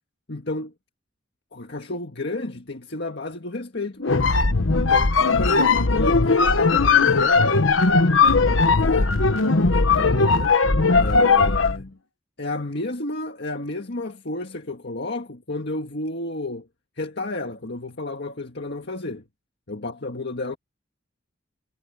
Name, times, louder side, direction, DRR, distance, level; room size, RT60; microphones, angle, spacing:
voice 1, 0.3-0.7 1.5-4.3 4.8-7.6 8.4-9.2 9.7-10.6 10.9-12.0 12.4-16.7 17.0-19.3 19.7-20.6, left 2 dB, 60° left, 1.8 m, -31 dB
sound 1, 4.0-11.8, left 4 dB, 85° left, 1.2 m, -18 dB
head